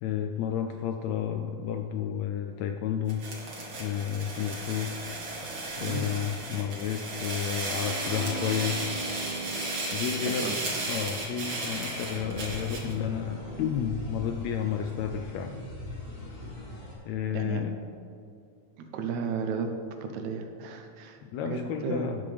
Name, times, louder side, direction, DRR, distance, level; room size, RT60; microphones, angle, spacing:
voice 1, 0.0-3.2 3.8-4.9 5.8-8.8 9.1-9.3 9.9-10.6 10.9-15.5 17.0-17.8 21.2-22.2, left 9 dB, 80° left, 6 dB, 1.6 m, -31 dB
sound 1, 3.1-12.9, right 2 dB, 45° right, 2.1 m, -35 dB
sound 2, 7.5-13.5, equal, 5° left, 1.7 m, -40 dB
voice 2, 10.2-10.5 17.3-17.6 18.8-19.7 20.0-21.2 21.4-22.0, right 5 dB, 75° right, 5 dB, 2.1 m, -33 dB
sound 3, 11.9-16.9, left 1 dB, 55° left, 3.0 m, -41 dB
12.5 x 9.7 x 3.4 m, 2.4 s
omnidirectional pair, 3.5 m